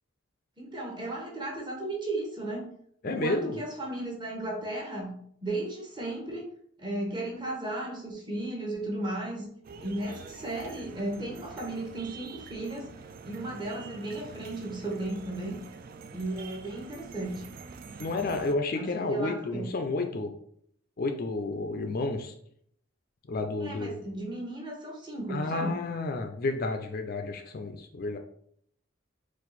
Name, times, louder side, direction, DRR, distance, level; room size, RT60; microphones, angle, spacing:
voice 1, 0.6-2.7 3.0-5.2 5.4-6.5 6.8-9.5 9.8-12.9 13.2-15.6 16.1-17.4 18.8-19.7 23.6-25.8, right 2 dB, 20° right, -1 dB, 1.0 m, -35 dB
voice 2, 3.0-3.6 18.0-20.3 21.0-22.3 23.3-24.0 25.3-28.2, left 3 dB, 45° left, 6 dB, 0.4 m, -31 dB
sound 1, 9.6-18.5, right 4 dB, 45° right, 0.3 m, -46 dB
4.4 x 2.5 x 4.0 m, 0.67 s
head